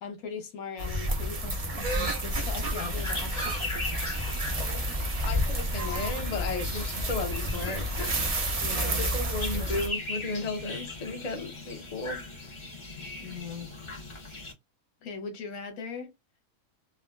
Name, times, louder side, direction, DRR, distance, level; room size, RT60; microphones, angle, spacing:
voice 1, 0.0-3.8 4.3-4.4 8.6-9.4 13.2-13.7 15.0-16.1, left 5 dB, 80° left, 1.3 m, -40 dB
sound 1, 0.8-9.9, right 1 dB, 50° right, 0.4 m, -30 dB
sound 2, 2.8-14.5, left 2 dB, 25° left, 1.0 m, -40 dB
voice 2, 5.2-8.2 8.8-12.2, left 3 dB, 40° left, 0.6 m, -34 dB
3.5 x 2.1 x 2.3 m
omnidirectional pair, 1.5 m